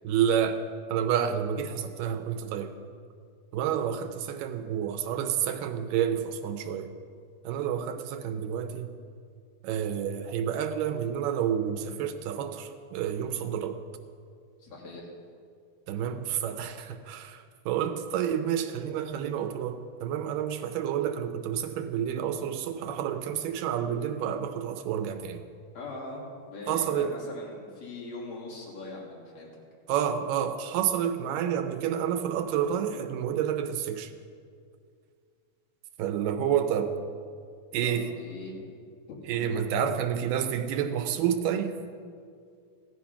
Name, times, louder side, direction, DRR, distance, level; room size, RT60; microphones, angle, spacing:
voice 1, 0.0-0.6 0.9-2.7 3.5-6.9 7.4-8.9 9.6-13.8 15.9-25.5 26.7-27.2 29.9-34.1 36.0-36.9 37.7-38.1 39.3-41.8, right 9 dB, 80° right, 8 dB, 2.3 m, -29 dB
voice 2, 14.6-15.1 25.7-29.5 37.8-38.7 39.1-39.6, left 2 dB, 50° left, -3 dB, 4.0 m, -41 dB
15.5 x 11.0 x 5.7 m, 2.2 s
omnidirectional pair, 4.1 m